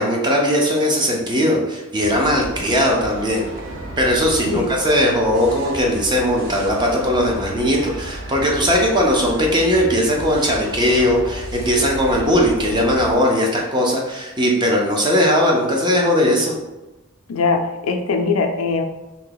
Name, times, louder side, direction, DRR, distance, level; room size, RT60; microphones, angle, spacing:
voice 1, 0.0-3.5 4.0-16.6, equal, 20° right, -1 dB, 0.7 m, -18 dB
sound 1, 2.0-13.2, right 1 dB, 65° right, 0.6 m, -33 dB
voice 2, 17.3-18.8, left 4 dB, 90° left, 5 dB, 0.4 m, -21 dB
2.8 x 2.7 x 3.9 m, 1.0 s
head